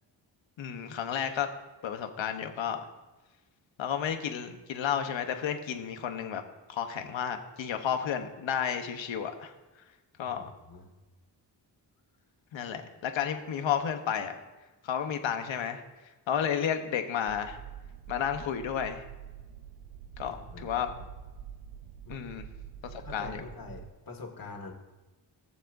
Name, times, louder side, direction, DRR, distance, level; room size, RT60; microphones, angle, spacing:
voice 1, 0.6-1.5 1.8-2.8 3.8-6.4 6.7-9.5 10.2-10.4 12.5-14.4 14.8-15.8 16.3-17.6 18.1-19.0 20.2-20.3 20.6-20.9 22.1-22.5 22.8-23.4, left 8 dB, 80° left, 6 dB, 1.1 m, -32 dB
voice 2, 10.2-10.9 20.3-20.8 22.1-22.2 23.0-24.7, left 3 dB, 50° left, 1 dB, 2.1 m, -45 dB
sound 1, 17.3-23.9, right 9 dB, 85° right, 0.7 m, -46 dB
16.5 x 7.3 x 2.7 m, 1.2 s
cardioid pair, 70°, 45 cm